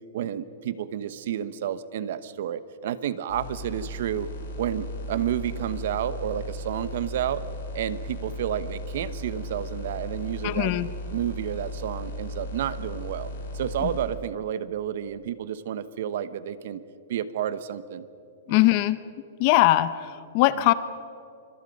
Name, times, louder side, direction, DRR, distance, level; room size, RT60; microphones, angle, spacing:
voice 1, 0.1-4.3 4.6-7.4 7.7-10.7 11.1-16.8 17.1-18.1 18.5-18.6 20.6-20.7, right 10 dB, 55° right, 14 dB, 1.0 m, -30 dB
sound 1, 3.3-14.1, equal, 55° left, 7.1 m, -36 dB
voice 2, 10.4-10.9 13.8-13.9 18.5-19.0 19.4-20.7, left 16 dB, 35° left, 14 dB, 0.7 m, -21 dB
25.5 x 25.0 x 5.3 m, 2.6 s
hypercardioid pair, 170°, 0 cm